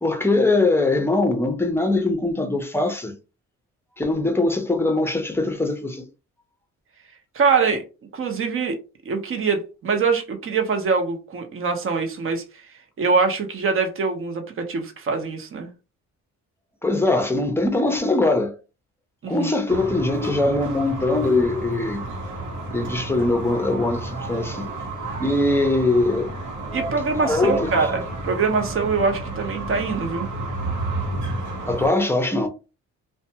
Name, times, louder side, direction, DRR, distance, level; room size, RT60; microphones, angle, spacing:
voice 1, 0.0-3.1 4.0-6.1 16.8-18.5 19.3-22.0 22.7-24.7 25.2-26.3 27.2-27.7 31.7-32.5, left 2 dB, 10° left, 0.6 m, -22 dB
voice 2, 7.3-7.8 8.1-8.8 9.1-12.4 13.0-15.7 19.2-19.5 26.7-30.3, right 4 dB, 45° right, 0.8 m, -23 dB
sound 1, 19.7-31.9, right 2 dB, 75° right, 1.0 m, -31 dB
2.5 x 2.2 x 2.8 m
cardioid pair, 90°, 30 cm